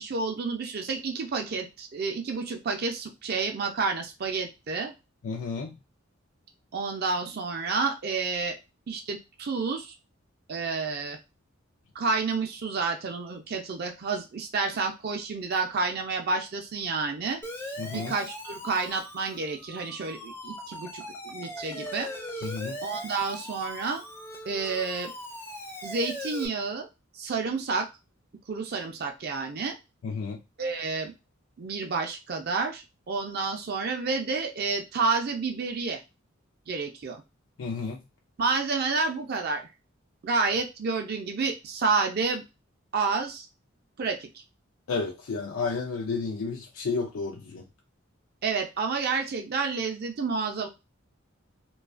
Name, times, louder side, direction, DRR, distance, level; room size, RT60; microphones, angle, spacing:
voice 1, 0.0-4.9 6.7-8.6 8.9-9.9 10.5-11.2 12.0-17.4 17.9-22.1 22.4-22.5 22.8-24.0 24.5-25.1 25.8-26.9 27.2-27.9 28.5-29.8 30.6-31.1 31.6-36.0 36.7-37.2 38.4-39.6 40.2-42.4 42.9-43.5 44.0-44.3 48.4-50.7, right 4 dB, 50° right, 4 dB, 0.4 m, -29 dB
voice 2, 5.2-5.7 17.8-18.1 22.4-22.7 30.0-30.4 37.6-38.0 44.9-47.6, left 4 dB, 85° left, 0 dB, 0.4 m, -31 dB
Siren, 17.4-26.5, equal, 10° left, 0.4 m, -40 dB
2.3 x 2.3 x 2.4 m, 0.25 s
head